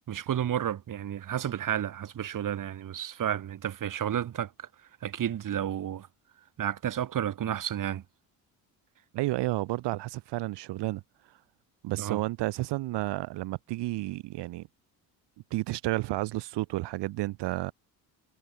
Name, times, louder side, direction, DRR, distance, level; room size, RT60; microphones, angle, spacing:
voice 1, 0.1-4.5 5.0-6.1 6.6-8.0 11.9-12.2, right 10 dB, 45° right, 1.0 m, -31 dB
voice 2, 9.1-11.0 11.3-11.4 11.8-14.7 15.5-17.7, right 18 dB, 60° right, 0.7 m, -31 dB
supercardioid pair, 65°, 47 cm